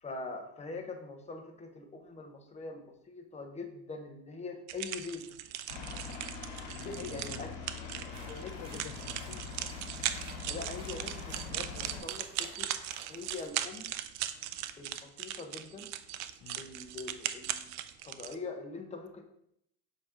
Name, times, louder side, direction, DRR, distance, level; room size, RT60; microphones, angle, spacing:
voice 1, 0.0-5.3 6.8-7.5 8.3-8.8 10.5-12.7 13.1-14.0 14.8-15.9 16.6-19.2, left 3 dB, 20° left, 4 dB, 1.0 m, -43 dB
sound 1, 4.7-18.4, right 12 dB, 50° right, 0.5 m, -39 dB
Aircraft, 5.7-12.0, left 5 dB, 90° left, 2.0 m, -43 dB
voice 2, 6.7-9.4 16.4-16.6, left 11 dB, 60° left, 11 dB, 0.5 m, -48 dB
sound 2, 8.1-13.5, right 1 dB, 15° right, 1.7 m, -54 dB
7.0 x 3.1 x 5.0 m, 0.74 s
supercardioid pair, 110°, 36 cm